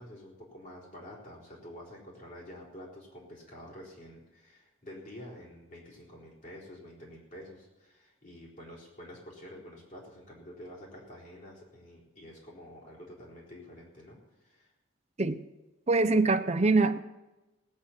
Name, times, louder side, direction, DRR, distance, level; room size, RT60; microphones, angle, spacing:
voice 1, 0.0-14.7, left 1 dB, 40° left, 4.1 m, -48 dB
voice 2, 15.9-17.0, right 3 dB, 35° right, 0.6 m, -24 dB
18.0 x 9.0 x 5.9 m
head